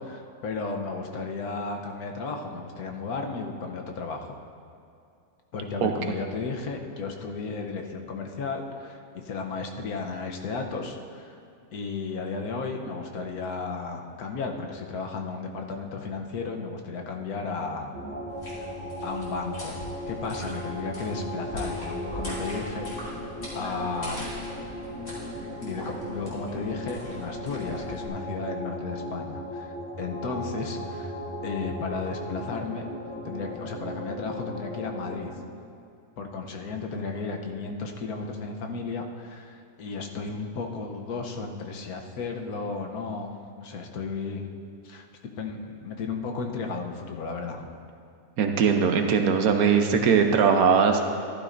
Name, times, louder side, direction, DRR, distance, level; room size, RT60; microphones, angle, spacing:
voice 1, 0.0-4.4 5.5-11.4 11.7-18.0 18.5-18.7 19.0-23.2 23.5-24.5 25.6-31.2 31.4-32.8 33.2-35.4 36.2-44.5 44.8-45.1 45.4-47.7, left 4 dB, 80° left, 3 dB, 1.4 m, -34 dB
sound 1, 17.9-35.3, equal, 10° left, 1.1 m, -36 dB
sound 2, 18.3-28.1, equal, 55° left, 3.3 m, -41 dB
voice 2, 48.4-51.1, right 6 dB, 75° right, 5 dB, 1.2 m, -20 dB
14.0 x 12.0 x 2.6 m, 2.5 s
omnidirectional pair, 1.6 m